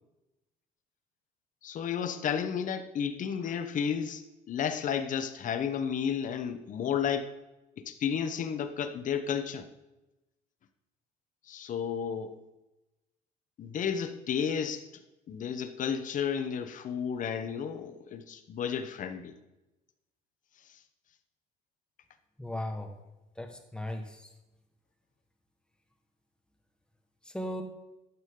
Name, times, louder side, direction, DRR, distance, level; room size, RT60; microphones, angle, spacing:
voice 1, 1.6-7.3 7.8-9.7 11.5-12.4 13.6-14.9 15.3-19.4, left 7 dB, 50° left, 9 dB, 0.9 m, -32 dB
voice 2, 22.4-22.9 23.4-24.3 27.2-27.6, left 1 dB, 5° left, 5 dB, 1.5 m, -37 dB
12.0 x 9.7 x 3.8 m, 1.0 s
cardioid pair, 110°, 17 cm